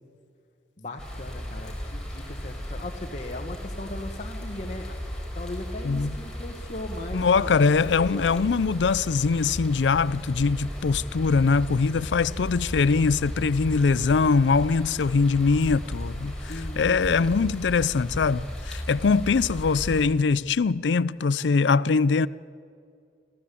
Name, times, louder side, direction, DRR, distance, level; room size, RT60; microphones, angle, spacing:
voice 1, 0.8-5.0 5.3-8.4 11.9-12.4 16.5-17.4, left 1 dB, 40° left, 1.6 m, -38 dB
sound 1, 1.0-20.1, equal, 5° left, 4.6 m, -36 dB
voice 2, 7.1-16.3 16.8-22.3, left 4 dB, 90° left, 0.5 m, -22 dB
27.0 x 15.0 x 8.5 m
head